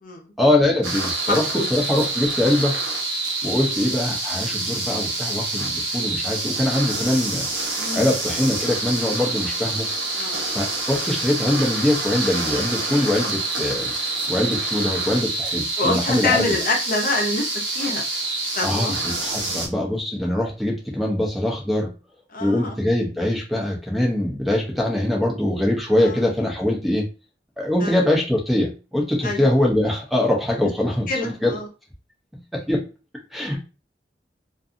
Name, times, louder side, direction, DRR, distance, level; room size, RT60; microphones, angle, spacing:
voice 1, 0.4-1.4 1.7-2.8 3.4-7.5 7.9-9.9 10.5-13.9 14.3-16.4 18.6-21.9 22.4-27.1 27.6-31.5 32.5-32.8 33.3-33.6, left 1 dB, ahead, -1 dB, 0.6 m, -22 dB
sound 1, 0.8-19.7, right 2 dB, 85° right, 0.8 m, -27 dB
voice 2, 1.3-1.7 3.6-3.7 7.8-8.1 10.2-10.5 15.8-17.5 17.7-18.0 18.6-18.9 19.6-19.7 22.3-22.8 26.0-26.3 27.8-28.0 29.2-29.4 30.6-30.7 31.1-31.7, left 2 dB, 50° left, 2 dB, 0.7 m, -26 dB
2.6 x 2.5 x 2.5 m, 0.31 s
head